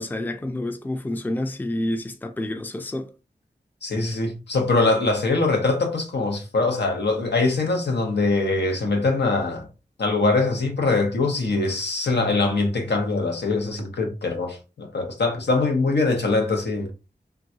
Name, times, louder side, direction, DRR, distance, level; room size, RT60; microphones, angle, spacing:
voice 1, 0.0-3.1, left 1 dB, 10° left, 0.4 m, -28 dB
voice 2, 3.8-9.7 10.0-16.9, left 3 dB, 85° left, 0.8 m, -23 dB
3.7 x 2.2 x 2.7 m
wide cardioid pair, 70°, 17 cm